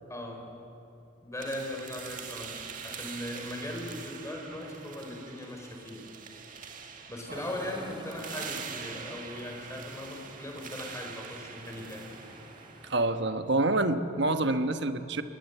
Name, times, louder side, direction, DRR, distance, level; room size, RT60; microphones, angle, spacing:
voice 1, 0.1-0.5 1.2-6.1 7.1-12.0, left 1 dB, 15° left, 2 dB, 4.4 m, -39 dB
sound 1, 1.4-13.3, right 6 dB, 45° right, 2.0 m, -44 dB
sound 2, 7.3-13.0, right 1 dB, 25° right, 3.7 m, -50 dB
voice 2, 12.8-15.2, right 2 dB, 65° right, 9 dB, 1.2 m, -27 dB
27.5 x 20.5 x 8.1 m, 2.8 s
head